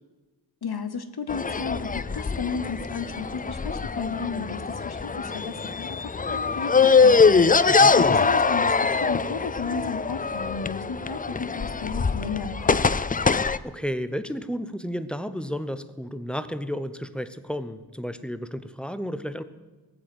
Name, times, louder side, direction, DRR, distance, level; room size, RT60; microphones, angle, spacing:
voice 1, 0.6-12.7, left 5 dB, 70° left, 12 dB, 1.0 m, -34 dB
sound 1, 1.3-13.6, left 5 dB, 25° left, 0.3 m, -23 dB
voice 2, 7.7-8.2 13.2-19.4, equal, ahead, 12 dB, 0.8 m, -32 dB
16.5 x 7.8 x 7.8 m, 1.2 s
wide cardioid pair, 70°, 40 cm